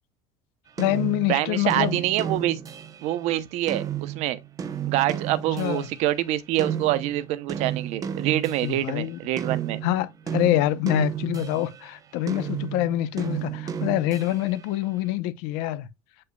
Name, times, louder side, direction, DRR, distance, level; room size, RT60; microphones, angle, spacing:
voice 1, 0.8-2.0 5.5-5.9 8.6-9.2 9.8-15.9, left 15 dB, 85° left, 0.8 m, -26 dB
sound 1, 0.8-6.1 6.6-11.9 12.3-14.7, right 9 dB, 30° right, 0.7 m, -33 dB
voice 2, 1.3-2.6 3.0-4.4 4.9-9.8, right 14 dB, 60° right, 0.8 m, -26 dB
7.9 x 5.5 x 2.3 m
cardioid pair, 155°, 13 cm